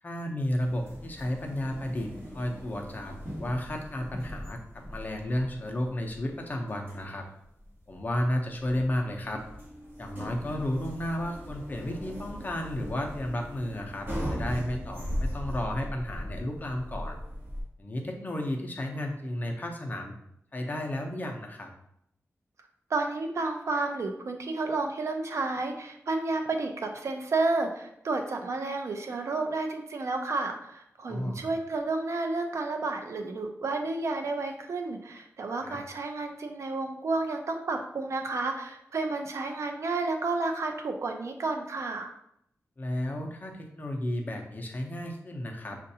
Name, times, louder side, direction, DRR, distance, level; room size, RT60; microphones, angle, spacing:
voice 1, 0.0-7.3 7.9-9.4 10.0-17.2 17.8-20.2 20.5-21.7 31.0-31.5 35.6-35.8 42.8-45.8, left 1 dB, 35° left, 2 dB, 0.7 m, -33 dB
sound 1, 0.6-17.6, equal, 40° right, 1.7 m, -39 dB
voice 2, 22.9-42.1, right 3 dB, 65° right, 5 dB, 0.5 m, -31 dB
6.3 x 2.5 x 2.7 m, 0.74 s
wide cardioid pair, 120°, 5 cm